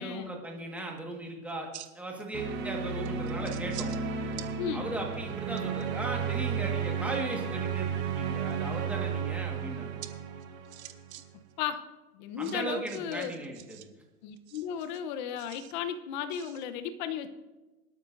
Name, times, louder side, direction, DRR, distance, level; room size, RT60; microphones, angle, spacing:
voice 1, 0.0-1.7 1.9-3.9 4.7-10.0 12.4-13.9, right 2 dB, 5° right, 0 dB, 1.6 m, -37 dB
sound 1, 0.8-1.0 1.5-2.2 2.5-2.6 3.0-4.0 4.3-4.5 5.0-5.8 8.0-8.5 10.0-10.1 10.4-11.2 11.5-11.6 12.4-13.9 14.4-15.7 16.3-16.6, right 13 dB, 45° right, 1.0 m, -47 dB
sound 2, 2.3-11.2, right 6 dB, 25° right, 1.2 m, -33 dB
voice 2, 4.6-4.9 11.6-11.8 12.1-13.3 14.2-17.3, left 8 dB, 30° left, 10 dB, 0.9 m, -35 dB
24.0 x 12.5 x 2.7 m, 1.1 s
hypercardioid pair, 145°, 45 cm